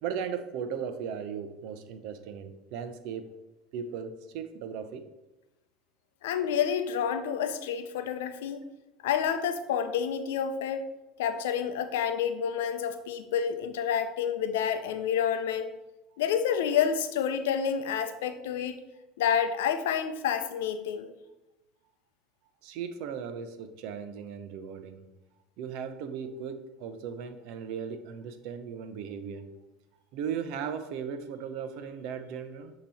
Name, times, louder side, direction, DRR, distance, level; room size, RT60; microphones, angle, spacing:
voice 1, 0.0-3.4 3.7-5.0 22.6-25.1 25.6-29.5 30.1-32.7, right 7 dB, 70° right, 10 dB, 0.7 m, -37 dB
voice 2, 6.2-8.6 9.0-10.9 11.2-15.7 16.2-18.8 19.2-21.1, left 8 dB, 90° left, 9 dB, 0.6 m, -29 dB
8.3 x 3.0 x 4.2 m, 1.0 s
supercardioid pair, 105°, 0 cm